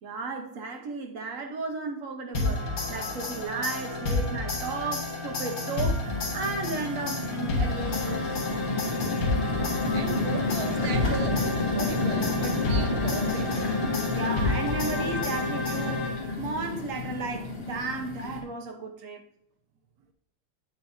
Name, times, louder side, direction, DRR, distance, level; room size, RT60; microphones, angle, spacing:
voice 1, 0.0-6.1 6.3-8.4 14.1-19.2, right 4 dB, 50° right, 1.1 m, -34 dB
sound 1, 2.3-16.5, left 3 dB, 45° left, 1.9 m, -30 dB
sound 2, 3.4-3.5 3.9-4.6 5.2-18.4, left 2 dB, 25° left, 1.8 m, -31 dB
voice 2, 9.9-13.6, right 5 dB, 85° right, 0.8 m, -37 dB
8.3 x 8.1 x 2.7 m
omnidirectional pair, 2.4 m